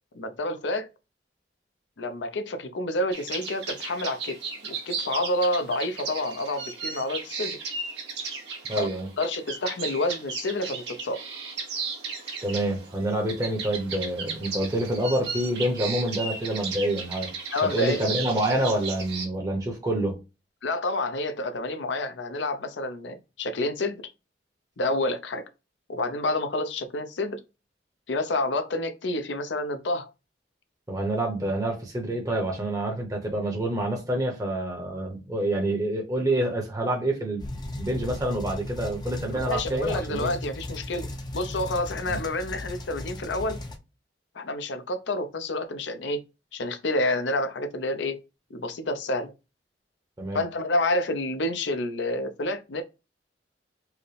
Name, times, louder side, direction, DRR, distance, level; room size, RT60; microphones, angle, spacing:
voice 1, 0.1-0.9 2.0-7.6 8.8-8.9 9.2-11.2 17.5-18.1 20.6-24.0 24.8-25.4 25.9-27.4 28.1-30.1 39.5-41.1 41.3-43.6 44.3-46.2 46.5-48.2 48.5-49.3 50.3-52.8, left 2 dB, 90° left, 0.6 m, -29 dB
sound 1, 3.1-19.3, right 5 dB, 70° right, 1.4 m, -35 dB
voice 2, 8.7-9.1 12.4-17.3 17.6-20.2 30.9-37.4 37.8-40.3 42.1-42.2 50.2-50.4, right 1 dB, 20° right, 0.8 m, -27 dB
sound 2, 37.4-43.8, left 1 dB, 25° left, 0.5 m, -36 dB
4.7 x 2.1 x 3.2 m
head